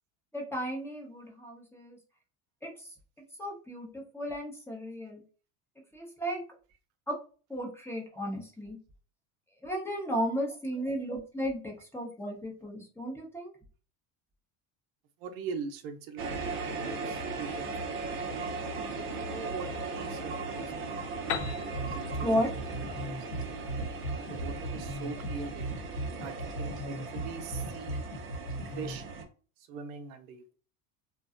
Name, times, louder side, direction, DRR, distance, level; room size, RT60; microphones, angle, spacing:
voice 1, 0.3-2.0 2.6-2.9 3.4-5.2 5.9-6.4 7.1-7.2 7.5-8.8 9.6-13.5 22.2-22.5, equal, 5° left, 0.7 m, -34 dB
voice 2, 15.2-17.9 18.8-21.3 21.9-22.5 23.0-23.1 24.1-25.8 26.2-28.0 28.8-29.0 29.6-30.5, right 5 dB, 80° right, 0.7 m, -42 dB
sound 1, 16.2-29.2, right 3 dB, 30° right, 0.6 m, -37 dB
Piano, 21.3-24.9, left 8 dB, 50° left, 0.4 m, -40 dB
sound 2, 21.4-29.0, right 1 dB, 70° left, 1.1 m, -37 dB
2.6 x 2.2 x 2.4 m
supercardioid pair, 115°, 41 cm